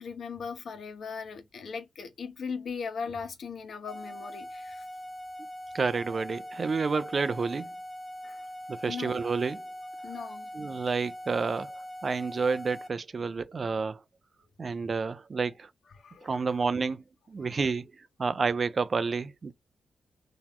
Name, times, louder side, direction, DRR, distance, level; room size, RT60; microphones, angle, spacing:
voice 1, 0.0-4.8 8.2-8.4 8.9-9.2 10.0-10.5 16.0-16.4, left 5 dB, 60° left, 1.2 m, -38 dB
sound 1, 3.9-12.9, equal, 10° left, 2.1 m, -42 dB
voice 2, 5.7-7.7 8.7-9.6 10.5-14.0 14.6-15.7 16.2-19.5, right 4 dB, 40° right, 0.4 m, -30 dB
3.9 x 2.9 x 4.2 m
wide cardioid pair, 120°, 0 cm